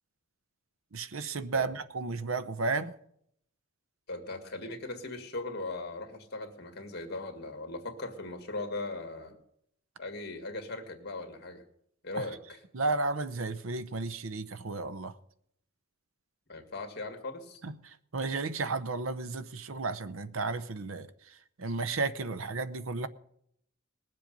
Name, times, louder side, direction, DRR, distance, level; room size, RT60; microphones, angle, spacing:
voice 1, 0.9-3.0 12.1-12.2 12.7-15.1 17.6-17.7 18.1-21.1 21.6-23.1, right 3 dB, 80° right, 0.7 m, -33 dB
voice 2, 4.1-9.4 10.0-11.6 12.0-12.6 16.5-17.6, left 2 dB, 50° left, 2.0 m, -39 dB
20.5 x 7.6 x 5.3 m
head